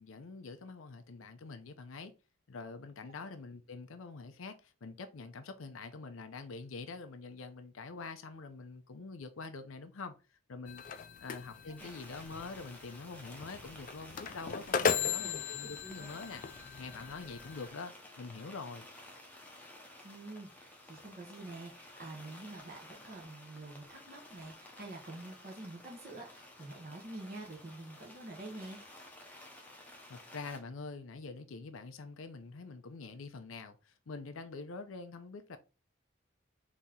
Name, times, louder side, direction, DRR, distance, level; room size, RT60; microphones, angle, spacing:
voice 1, 0.0-2.1 2.5-10.2 10.5-16.4 16.8-18.9 30.1-35.6, left 4 dB, 90° left, 0.6 m, -45 dB
sound 1, 10.7-17.7, left 6 dB, 40° left, 0.4 m, -37 dB
sound 2, 11.8-30.6, left 1 dB, 10° left, 0.8 m, -53 dB
voice 2, 15.6-16.1 19.8-28.8, right 2 dB, 45° right, 1.0 m, -47 dB
4.2 x 2.9 x 3.6 m
head